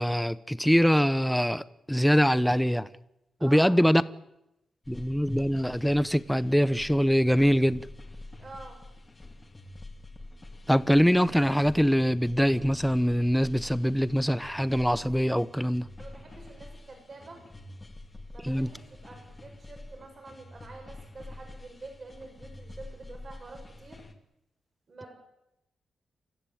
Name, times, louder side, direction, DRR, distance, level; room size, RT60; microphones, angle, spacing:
voice 1, 0.0-2.9 3.4-4.0 4.9-7.8 10.7-15.9 18.4-18.7, equal, ahead, 0.8 m, -23 dB
voice 2, 3.4-3.8 8.4-8.8 16.0-17.4 18.3-24.0 24.9-25.1, right 3 dB, 40° right, 6.9 m, -47 dB
sound 1, 4.8-24.1, left 2 dB, 20° left, 2.6 m, -47 dB
28.5 x 15.0 x 8.8 m
wide cardioid pair, 135°, 0 cm